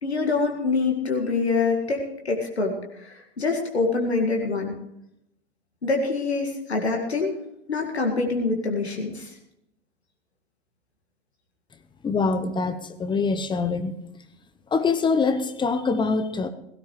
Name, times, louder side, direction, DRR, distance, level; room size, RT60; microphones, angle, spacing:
voice 1, 0.0-4.7 5.8-7.3 7.7-9.3, left 3 dB, 80° left, 2 dB, 2.1 m, -25 dB
voice 2, 12.0-13.9 14.7-16.5, left 4 dB, 15° left, 9 dB, 1.0 m, -24 dB
17.5 x 16.5 x 3.3 m, 0.81 s
figure-of-eight pair, 90°, 32 cm